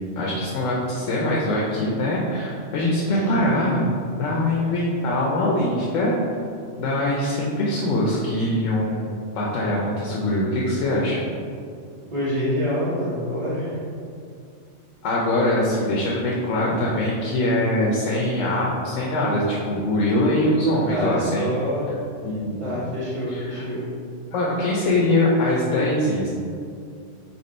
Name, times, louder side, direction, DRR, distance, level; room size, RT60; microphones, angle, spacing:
voice 1, 0.2-3.9 4.2-6.2 6.8-11.2 15.0-21.5 22.2-22.6 23.3-23.7 24.3-26.3, left 1 dB, 90° left, -4 dB, 1.0 m, -23 dB
voice 2, 12.1-13.8 20.9-21.9 22.6-23.9, equal, 25° right, -12 dB, 1.7 m, -26 dB
4.3 x 2.9 x 4.2 m, 2.4 s
omnidirectional pair, 1.3 m